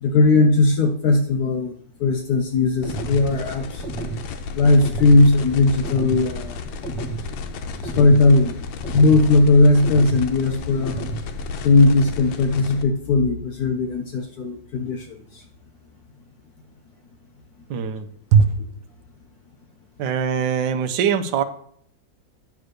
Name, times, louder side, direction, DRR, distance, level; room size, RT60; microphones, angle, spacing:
voice 1, 0.0-1.7 2.0-3.8 4.5-6.6 7.9-8.5 8.9-10.9 11.6-15.4, left 2 dB, 65° left, 5 dB, 1.1 m, -17 dB
sound 1, 2.8-12.8, left 4 dB, 85° left, 1.5 m, -33 dB
sound 2, 2.8-3.2 3.8-4.2 4.8-5.2 5.8-6.2 6.8-7.2 7.8-8.2 8.8-9.2 9.8-10.2 10.8-11.2, right 3 dB, 5° left, 0.4 m, -31 dB
voice 2, 17.7-18.6 20.0-21.4, right 7 dB, 75° right, 8 dB, 1.4 m, -21 dB
9.4 x 3.6 x 6.5 m, 0.63 s
omnidirectional pair, 2.1 m